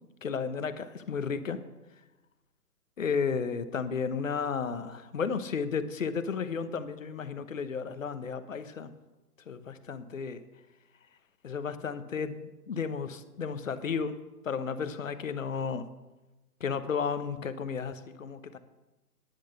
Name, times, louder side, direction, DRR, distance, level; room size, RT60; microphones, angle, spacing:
voice 1, 0.2-1.6 3.0-8.9 9.5-10.4 11.4-14.2 14.4-15.9 16.6-18.6, left 6 dB, 55° left, 12 dB, 1.1 m, -33 dB
10.5 x 10.5 x 6.7 m, 1.1 s
hypercardioid pair, 155°, 47 cm